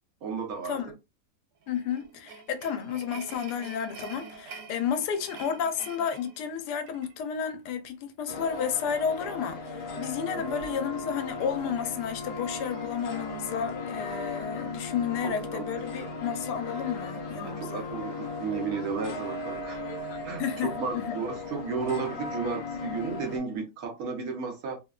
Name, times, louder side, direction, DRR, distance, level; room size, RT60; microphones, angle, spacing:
voice 1, 0.2-0.8 10.4-10.5 15.2-15.7 16.0-16.1 17.4-19.8 20.2-24.8, right 5 dB, 65° right, 1.2 m, -33 dB
sound 1, 1.6-7.1, right 5 dB, 85° right, 1.2 m, -46 dB
voice 2, 1.7-17.9 20.4-21.2, left 7 dB, 90° left, 1.2 m, -32 dB
sound 2, 8.3-23.4, left 3 dB, 70° left, 0.6 m, -37 dB
Wind instrument woodwind instrument, 10.3-19.1, left 1 dB, 25° left, 1.1 m, -43 dB
3.2 x 2.2 x 2.2 m
omnidirectional pair, 1.7 m